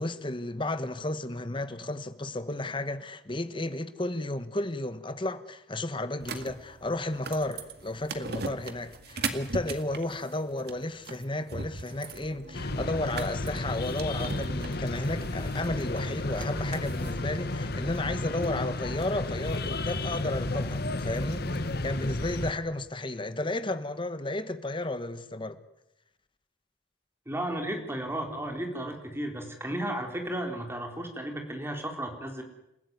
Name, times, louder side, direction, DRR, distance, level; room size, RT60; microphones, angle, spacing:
voice 1, 0.0-25.6, left 2 dB, 25° left, 1.3 m, -33 dB
sound 1, 6.2-17.2, right 3 dB, 55° right, 2.1 m, -39 dB
sound 2, 12.5-22.5, left 2 dB, 55° left, 1.5 m, -32 dB
voice 2, 27.3-32.4, right 1 dB, 15° right, 3.8 m, -34 dB
28.0 x 15.5 x 9.6 m
head